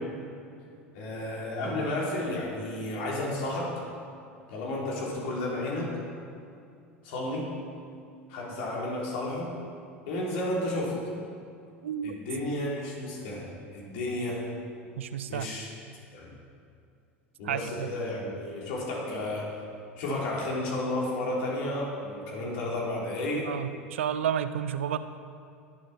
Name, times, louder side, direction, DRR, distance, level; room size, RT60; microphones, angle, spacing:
voice 1, 0.9-3.8 4.5-6.0 7.0-7.5 8.3-9.5 10.0-11.0 12.0-14.5 15.3-15.7 16.1-16.4 17.4-19.5 20.0-23.5, left 1 dB, 60° left, -3 dB, 3.4 m, -32 dB
voice 2, 11.8-12.1 15.0-15.5 17.4-17.9 23.5-25.0, right 9 dB, 70° right, 12 dB, 0.5 m, -31 dB
21.5 x 7.5 x 4.2 m, 2.4 s
figure-of-eight pair, 75°, 7 cm